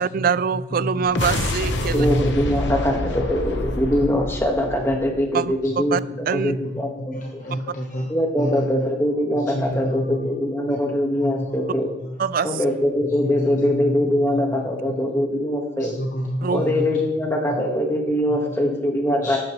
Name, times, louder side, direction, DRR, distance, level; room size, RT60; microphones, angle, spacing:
voice 1, 0.0-2.1 5.3-5.5 5.9-6.0 6.3-6.5 12.2-12.5 16.4-16.6, right 6 dB, 50° right, 17 dB, 0.4 m, -23 dB
voice 2, 0.7-1.0 1.9-2.7 3.6-4.2 5.9-6.7 7.0-8.1 8.4-8.8 9.4-10.3 10.7-10.8 11.2-11.7 12.0-12.1 13.2-14.1 14.3-14.4 15.1-15.2 15.8-17.1 17.5-17.6 19.2-19.4, equal, 45° left, -1 dB, 1.2 m, -29 dB
sound 1, 1.0-5.5, left 1 dB, 75° left, 1.0 m, -27 dB
voice 3, 1.9-7.4 8.1-11.9 12.4-15.9 16.5-19.4, left 1 dB, 15° left, 1 dB, 1.5 m, -22 dB
12.0 x 8.6 x 3.1 m, 0.99 s
head